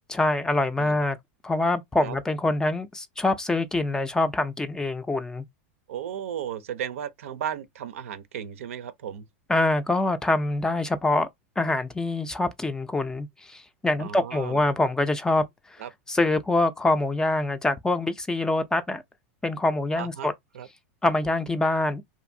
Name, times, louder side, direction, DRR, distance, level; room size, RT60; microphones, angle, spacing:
voice 1, 0.1-1.2 1.4-5.4 9.5-11.3 11.6-15.4 16.1-19.0 19.4-20.3 21.0-22.0, left 2 dB, 10° left, 0.3 m, -25 dB
voice 2, 5.9-9.3 14.0-14.6 15.8-15.9 20.0-20.3 20.5-20.7, right 9 dB, 85° right, 0.5 m, -35 dB
2.6 x 2.5 x 2.6 m
supercardioid pair, 125°, 7 cm